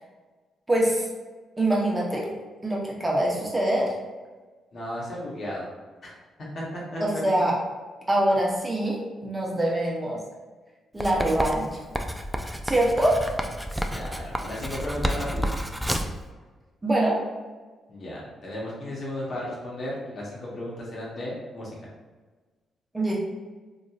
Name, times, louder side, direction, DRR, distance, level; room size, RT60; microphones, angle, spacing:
voice 1, 0.7-1.0 1.6-2.3 2.6-3.9 7.0-7.5 8.1-10.2 10.9-11.8 12.6-13.3 16.8-17.2 22.9-23.2, right 1 dB, 20° right, -3 dB, 0.8 m, -24 dB
voice 2, 4.7-5.7 6.0-6.1 6.4-6.6 6.9-7.2 13.9-15.5 17.9-21.7, left 1 dB, 55° left, -5 dB, 1.0 m, -34 dB
Writing, 11.0-16.2, equal, 5° right, 0.3 m, -30 dB
2.9 x 2.4 x 2.4 m, 1.3 s
hypercardioid pair, 45°, 0 cm